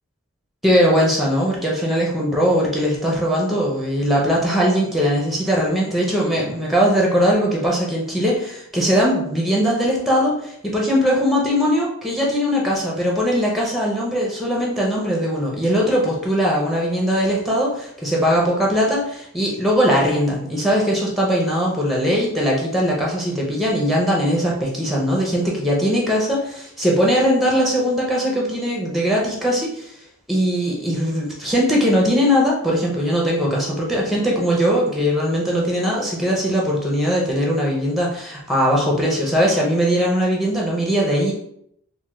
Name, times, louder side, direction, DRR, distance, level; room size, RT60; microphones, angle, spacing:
voice 1, 0.6-29.9 30.3-41.3, equal, ahead, -3 dB, 0.5 m, -20 dB
3.3 x 2.1 x 3.0 m, 0.73 s
head